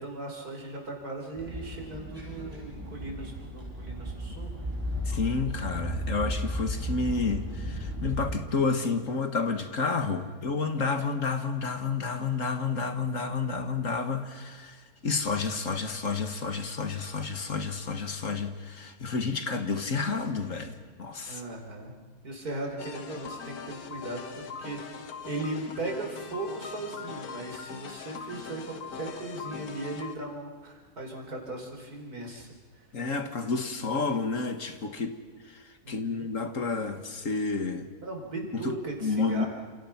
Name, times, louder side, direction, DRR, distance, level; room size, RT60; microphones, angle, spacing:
voice 1, 0.0-4.5 21.3-21.9 22.2-24.8 25.2-32.8 35.8-36.3 38.0-39.5, right 2 dB, 70° right, 1 dB, 4.9 m, -38 dB
sound 1, 1.4-8.4, equal, 10° right, 6.6 m, -34 dB
voice 2, 5.1-21.4 32.9-35.2 35.5-35.6 35.9-37.9 38.5-38.8 39.0-39.4, left 4 dB, 55° left, 7 dB, 2.0 m, -30 dB
sound 2, 22.8-30.2, left 5 dB, 70° left, 1.9 m, -41 dB
29.5 x 27.5 x 5.9 m, 1.5 s
omnidirectional pair, 1.6 m